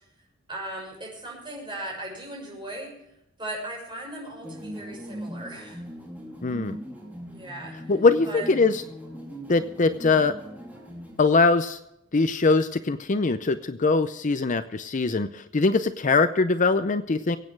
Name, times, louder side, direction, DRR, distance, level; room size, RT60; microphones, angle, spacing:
voice 1, 0.5-2.9 3.4-5.8 7.3-7.7 8.2-8.6, right 1 dB, 25° right, -2 dB, 6.4 m, -37 dB
sound 1, 4.4-11.2, equal, 10° right, 2.9 m, -40 dB
voice 2, 6.4-6.8 7.9-8.8 9.5-10.3 11.2-11.8 12.1-17.4, left 3 dB, 40° left, 10 dB, 0.6 m, -22 dB
23.0 x 8.8 x 4.7 m, 0.81 s
head